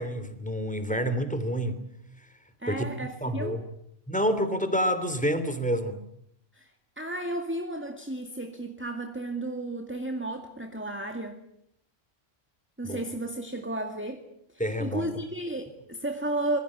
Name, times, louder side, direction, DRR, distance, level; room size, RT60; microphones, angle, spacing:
voice 1, 0.0-1.8 2.2-2.3 2.7-3.6 4.1-6.0 12.8-13.0 14.6-15.1, equal, 5° left, 10 dB, 3.1 m, -28 dB
voice 2, 2.6-3.6 6.5-11.4 12.8-16.6, right 1 dB, 10° right, 5 dB, 2.0 m, -33 dB
27.0 x 22.0 x 8.7 m, 0.73 s
omnidirectional pair, 1.3 m